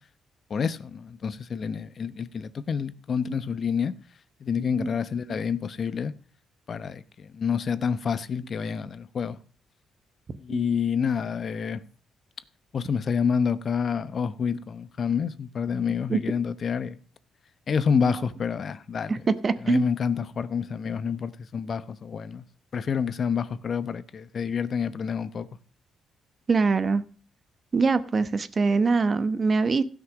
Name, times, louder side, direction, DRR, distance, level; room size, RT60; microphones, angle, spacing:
voice 1, 0.5-3.9 4.4-6.1 6.7-9.4 10.4-11.8 12.7-17.0 17.7-19.2 19.6-22.4 22.7-25.5, left 6 dB, 50° left, 0.9 m, -28 dB
voice 2, 4.6-4.9 10.5-10.7 16.1-16.2 18.1-18.2 19.1-19.9 26.5-27.0 27.7-29.8, right 4 dB, 35° right, 1.1 m, -24 dB
16.0 x 6.1 x 6.3 m
cardioid pair, 90°, 0 cm